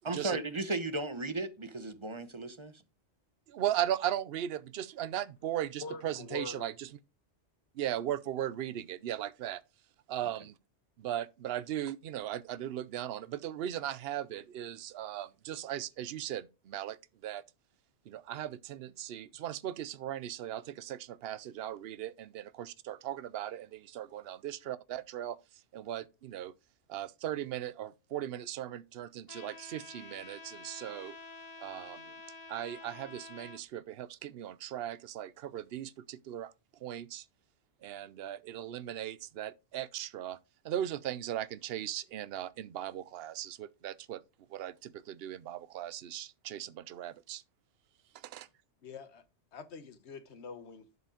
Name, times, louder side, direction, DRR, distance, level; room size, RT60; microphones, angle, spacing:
voice 1, 0.0-2.7, right 2 dB, 30° right, 0.8 m, -35 dB
voice 2, 3.5-6.9 7.7-9.6 10.1-10.5 11.0-17.0 17.2-17.4 18.1-25.4 25.7-26.5 26.9-31.2 31.6-32.1 32.5-36.5 36.8-37.2 37.8-40.4 40.6-44.2 44.5-47.4 48.1-48.5, right 11 dB, 60° right, 0.8 m, -38 dB
voice 3, 5.8-6.7 48.8-49.2 49.5-50.9, left 4 dB, 65° left, 1.3 m, -44 dB
Trumpet, 29.3-33.6, left 3 dB, 35° left, 1.0 m, -49 dB
11.0 x 5.0 x 5.0 m
omnidirectional pair, 1.2 m